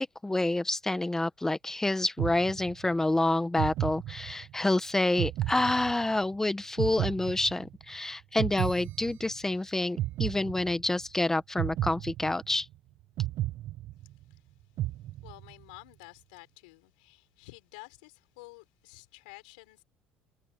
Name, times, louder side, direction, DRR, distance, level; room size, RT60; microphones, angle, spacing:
voice 1, 0.0-12.7, left 2 dB, 10° left, 1.3 m, -28 dB
sound 1, 2.2-3.0 3.6-4.6 5.2-6.3 6.8-8.0 8.4-9.6 10.0-11.0 11.6-12.7 13.2-14.4 14.8-15.6, right 14 dB, 60° right, 1.0 m, -33 dB
voice 2, 15.2-19.8, left 25 dB, 90° left, 4.4 m, -51 dB
supercardioid pair, 90°, 4 cm